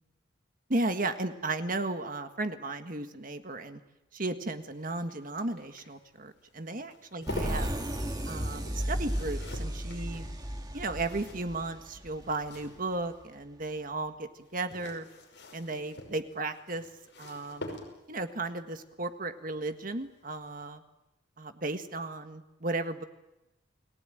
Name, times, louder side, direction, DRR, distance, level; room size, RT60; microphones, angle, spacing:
voice 1, 0.7-3.8 4.1-7.7 8.3-10.2 10.7-15.1 15.5-16.8 17.2-17.7 18.1-20.8 21.4-23.0, right 2 dB, 45° right, 8 dB, 1.7 m, -35 dB
sound 1, 4.4-13.2 14.4-18.3 19.9-20.2 20.5-20.6, left 1 dB, 60° left, 5.6 m, -46 dB
sound 2, 7.3-12.8, equal, 20° right, 2.1 m, -34 dB
29.5 x 19.0 x 9.2 m, 0.95 s
head